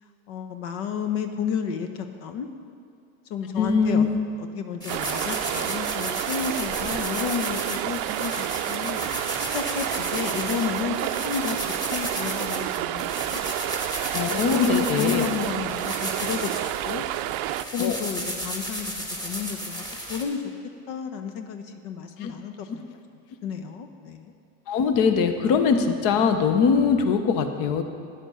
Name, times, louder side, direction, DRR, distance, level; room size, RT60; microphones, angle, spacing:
voice 1, 0.3-2.5 3.3-4.1 4.4-9.0 9.4-11.6 11.9-13.4 14.3-17.1 17.7-19.8 20.1-20.4 20.9-22.9 23.4-24.3, left 7 dB, 70° left, 7 dB, 1.0 m, -31 dB
voice 2, 3.6-4.2 14.1-15.3 17.8-18.0 22.2-22.3 24.7-27.8, left 6 dB, 50° left, 8 dB, 1.0 m, -22 dB
sound 1, 4.8-20.2, equal, 10° left, 1.9 m, -34 dB
sound 2, 4.9-17.6, right 15 dB, 55° right, 0.5 m, -29 dB
12.0 x 10.0 x 5.6 m, 2.5 s
supercardioid pair, 125°, 42 cm